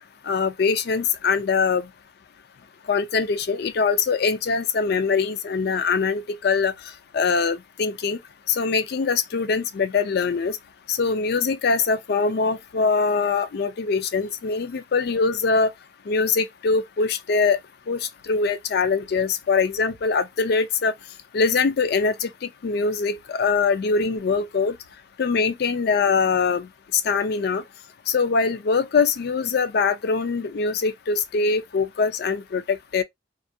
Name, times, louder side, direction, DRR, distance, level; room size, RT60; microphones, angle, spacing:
voice 1, 0.2-1.9 2.9-6.7 7.1-8.2 8.5-10.6 10.9-15.7 16.1-17.6 17.9-20.9 21.3-22.3 22.6-24.8 25.2-27.6 28.1-33.0, left 5 dB, 55° left, 0.3 m, -23 dB
2.4 x 2.2 x 2.6 m
head